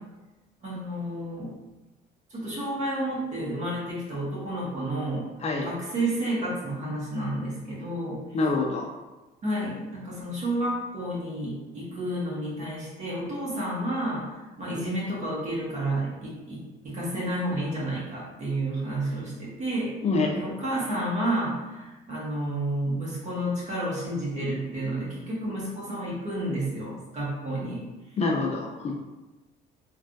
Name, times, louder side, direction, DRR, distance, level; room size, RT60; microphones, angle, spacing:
voice 1, 0.6-1.5 2.3-5.3 5.6-8.2 9.4-16.6 16.8-19.9 20.4-27.8, right 1 dB, 45° right, -5 dB, 1.2 m, -30 dB
voice 2, 8.3-8.9 20.0-20.4 28.2-28.9, left 3 dB, 40° left, 0 dB, 0.5 m, -26 dB
3.4 x 2.3 x 2.6 m, 1.1 s
cardioid pair, 110°, 17 cm